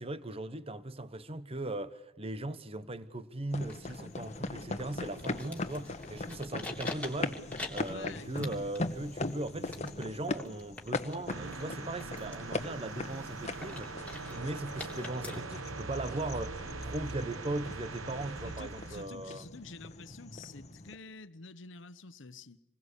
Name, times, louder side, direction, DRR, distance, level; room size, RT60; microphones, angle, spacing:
voice 1, 0.0-7.4 7.7-19.4, right 2 dB, 30° right, 1.1 m, -39 dB
sound 1, 3.5-21.0, left 2 dB, 35° left, 1.4 m, -40 dB
sound 2, 3.6-15.4, left 2 dB, 5° left, 3.2 m, -47 dB
voice 2, 7.9-8.7 18.4-22.6, left 3 dB, 60° left, 1.1 m, -48 dB
sound 3, 11.3-19.1, right 3 dB, 85° right, 1.5 m, -42 dB
27.5 x 21.5 x 8.3 m
head